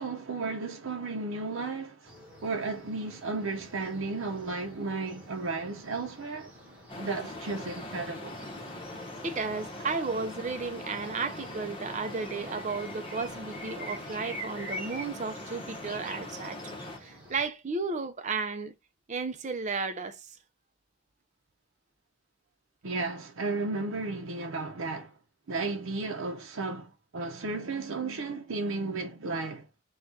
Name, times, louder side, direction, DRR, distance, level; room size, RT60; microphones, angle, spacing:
voice 1, 0.0-2.1 2.4-6.5 7.0-8.4 22.8-25.2 25.5-29.7, right 3 dB, 80° right, 0.6 m, -34 dB
sound 1, 2.0-17.5, right 1 dB, 5° right, 1.4 m, -47 dB
sound 2, 6.9-17.0, left 1 dB, 25° left, 0.8 m, -42 dB
voice 2, 9.2-18.7 19.1-20.4, right 4 dB, 35° right, 0.5 m, -34 dB
3.9 x 2.3 x 4.6 m
head